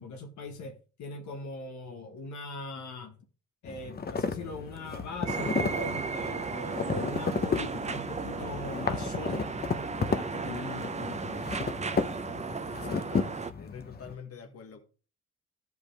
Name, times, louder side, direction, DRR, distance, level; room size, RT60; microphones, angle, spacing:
voice 1, 0.0-3.2 3.6-9.5 10.1-11.6, left 2 dB, 70° left, 1.5 m, -40 dB
sound 1, 3.6-14.1, left 5 dB, 30° left, 0.9 m, -34 dB
sound 2, 5.2-13.5, right 4 dB, 25° right, 0.7 m, -35 dB
voice 2, 12.7-14.8, left 6 dB, 50° left, 1.6 m, -46 dB
13.0 x 5.2 x 3.4 m
cardioid pair, 90°, 30 cm